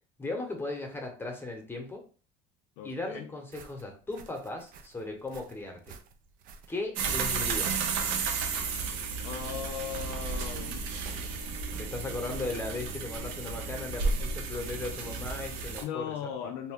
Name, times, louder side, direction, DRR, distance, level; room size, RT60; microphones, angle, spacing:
voice 1, 0.2-2.0 2.8-5.9 6.7-7.8 11.8-16.1 16.4-16.5, left 2 dB, 10° left, 0.9 m, -37 dB
voice 2, 2.8-3.4 9.2-10.9 15.8-16.7, left 9 dB, 70° left, 0.4 m, -38 dB
snow footsteps, 3.5-15.7, right 5 dB, 50° right, 0.5 m, -49 dB
sound 1, 7.0-15.8, right 4 dB, 85° right, 0.8 m, -33 dB
2.6 x 2.2 x 3.5 m
supercardioid pair, 120°, 18 cm